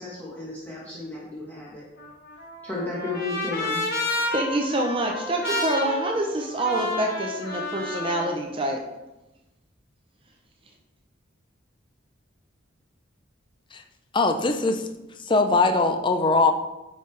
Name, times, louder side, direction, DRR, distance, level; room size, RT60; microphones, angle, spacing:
voice 1, 0.0-1.9 2.6-3.8, left 3 dB, 10° left, -7 dB, 1.2 m, -33 dB
Trumpet, 2.0-8.3, left 2 dB, 50° left, 1.3 m, -30 dB
voice 2, 4.3-8.8, right 1 dB, 25° right, 1 dB, 0.6 m, -26 dB
voice 3, 14.1-14.9 15.2-16.5, left 3 dB, 25° left, 7 dB, 0.5 m, -21 dB
8.9 x 5.2 x 3.2 m, 1.0 s
head